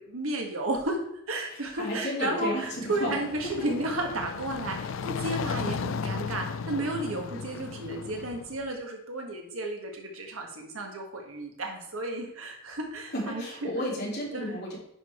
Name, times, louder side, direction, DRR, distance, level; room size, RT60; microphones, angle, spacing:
voice 1, 0.0-13.7 14.3-14.6, right 2 dB, 90° right, 2 dB, 1.7 m, -33 dB
voice 2, 1.5-3.1 13.1-14.8, left 1 dB, 50° left, -4 dB, 2.9 m, -33 dB
sound 1, 2.6-8.7, left 5 dB, 70° left, 0.4 m, -35 dB
9.7 x 4.9 x 4.4 m, 0.73 s
head